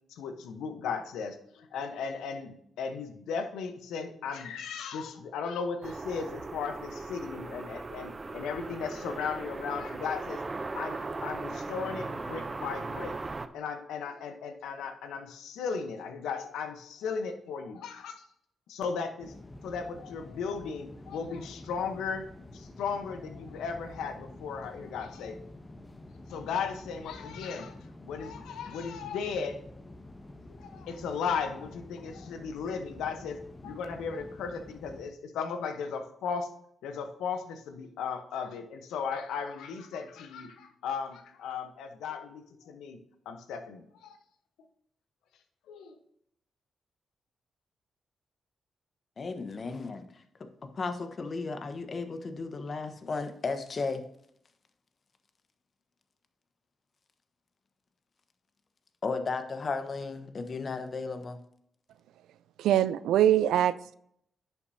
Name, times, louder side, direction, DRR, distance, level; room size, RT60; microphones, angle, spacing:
voice 1, 0.2-13.2 13.5-18.1 18.7-19.3 19.6-25.4 26.3-27.8 28.0-29.6 30.6-36.5 36.8-43.0 43.2-44.2 45.7-46.0, left 6 dB, 80° left, 6 dB, 1.0 m, -36 dB
sound 1, 5.8-13.5, right 3 dB, 35° right, 0.7 m, -38 dB
sound 2, 19.2-35.1, left 1 dB, 25° left, 0.9 m, -48 dB
voice 2, 49.2-54.0 59.0-61.4, left 4 dB, 50° left, 8 dB, 1.1 m, -35 dB
voice 3, 62.6-63.9, right 11 dB, 80° right, 16 dB, 0.3 m, -23 dB
10.5 x 7.1 x 2.8 m, 0.70 s
supercardioid pair, 45°, 0 cm